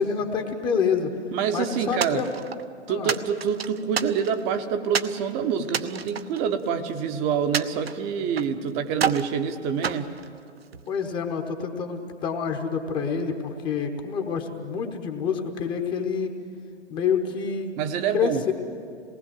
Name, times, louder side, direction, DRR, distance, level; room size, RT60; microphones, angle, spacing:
voice 1, 0.0-1.1 1.5-2.3 2.9-3.1 10.9-16.3 16.9-17.7 18.1-18.5, left 6 dB, 15° left, 5 dB, 1.0 m, -27 dB
voice 2, 1.3-2.2 2.9-10.1 17.8-18.4, right 7 dB, 20° right, 8 dB, 0.9 m, -26 dB
sound 1, 2.0-2.7 3.1-4.5 4.9-5.2 5.7-7.0 7.5-8.6 8.9-9.3 9.8-10.9, right 7 dB, 60° right, 0.9 m, -30 dB
27.0 x 19.5 x 7.6 m, 2.4 s
figure-of-eight pair, 125°, 35 cm